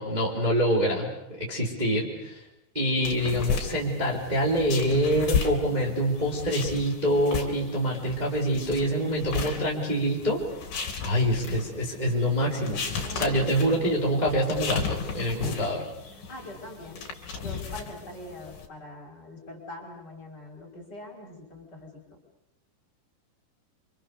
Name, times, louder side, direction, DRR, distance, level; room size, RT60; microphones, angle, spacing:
voice 1, 0.0-2.4 2.7-10.4 11.0-15.8, equal, 10° right, -3 dB, 3.9 m, -26 dB
sound 1, 3.0-18.7, left 6 dB, 50° left, 4.4 m, -35 dB
voice 2, 3.0-3.5 13.0-13.5 15.3-15.7 16.3-17.0 17.4-21.9, left 2 dB, 25° left, 0 dB, 5.0 m, -42 dB
28.0 x 25.5 x 6.9 m, 0.81 s
omnidirectional pair, 5.0 m